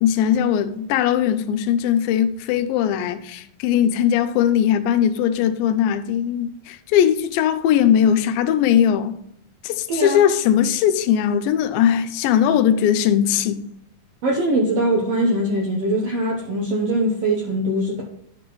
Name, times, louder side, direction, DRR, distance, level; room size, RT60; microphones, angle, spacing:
voice 1, 0.0-9.2 9.6-13.7, left 9 dB, 90° left, 2.3 m, -19 dB
voice 2, 9.9-10.2 14.2-18.0, right 1 dB, 75° right, 1.4 m, -22 dB
11.0 x 5.9 x 3.0 m
omnidirectional pair, 4.0 m